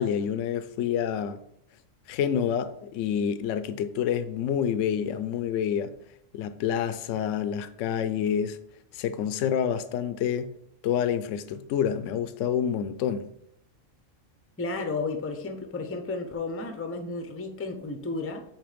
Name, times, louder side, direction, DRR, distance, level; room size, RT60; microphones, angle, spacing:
voice 1, 0.0-1.4 2.1-5.9 6.3-8.6 8.9-10.5 10.8-13.3, left 8 dB, 75° left, 0.9 m, -28 dB
voice 2, 14.6-18.4, left 3 dB, 15° left, 0.5 m, -33 dB
6.3 x 4.4 x 5.1 m
omnidirectional pair, 1.4 m